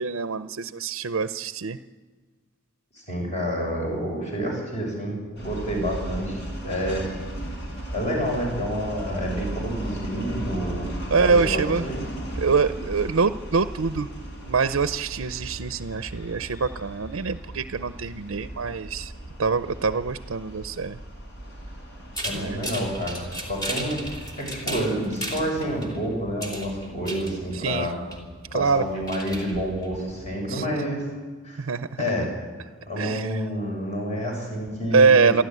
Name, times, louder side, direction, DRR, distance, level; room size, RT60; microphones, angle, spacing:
voice 1, 0.0-1.8 11.1-11.8 12.4-14.1 14.4-19.1 19.4-21.0 22.3-22.6 27.5-27.9 28.5-28.8 30.5-30.6 31.6-31.9 33.0-33.4 34.9-35.4, right 5 dB, 80° right, 11 dB, 0.6 m, -24 dB
voice 2, 3.0-7.1 7.9-10.9 11.3-12.0 22.2-28.0 28.5-31.1 31.4-31.7 32.0-32.3 32.9-35.4, equal, 35° left, 0 dB, 7.0 m, -29 dB
sound 1, 5.4-24.8, right 1 dB, 55° left, 5.4 m, -36 dB
sound 2, 22.1-30.4, right 1 dB, 20° left, 3.2 m, -36 dB
28.5 x 11.5 x 9.4 m, 1.4 s
head